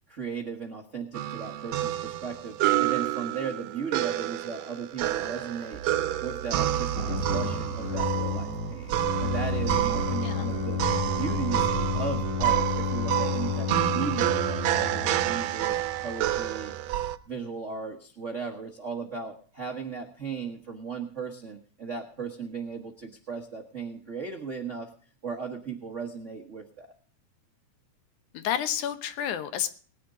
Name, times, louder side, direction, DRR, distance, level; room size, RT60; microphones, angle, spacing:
voice 1, 0.1-5.8 6.2-10.8 11.2-11.7 11.9-15.8 16.0-17.0 17.3-24.9 25.2-26.9, right 5 dB, 60° right, 2 dB, 0.7 m, -36 dB
sound 1, 1.1-17.2, right 12 dB, 75° right, 1.8 m, -29 dB
sound 2, 5.7-17.2, right 8 dB, 40° right, 1.2 m, -39 dB
sound 3, 6.9-15.5, left 6 dB, 35° left, 2.1 m, -31 dB
voice 2, 28.3-29.8, left 10 dB, 80° left, 10 dB, 2.4 m, -30 dB
19.5 x 10.0 x 3.7 m, 0.43 s
omnidirectional pair, 3.4 m